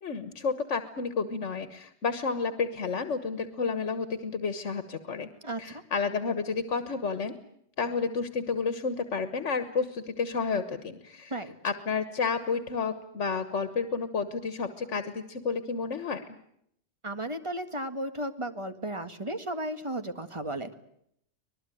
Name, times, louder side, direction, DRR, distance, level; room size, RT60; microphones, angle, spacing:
voice 1, 0.0-5.3 5.6-7.3 7.8-11.3 11.6-16.2, left 5 dB, 85° left, 11 dB, 1.6 m, -31 dB
voice 2, 5.4-5.8 11.3-11.5 17.0-20.7, right 1 dB, 25° right, 8 dB, 1.9 m, -34 dB
25.0 x 20.0 x 9.1 m, 0.73 s
omnidirectional pair, 1.2 m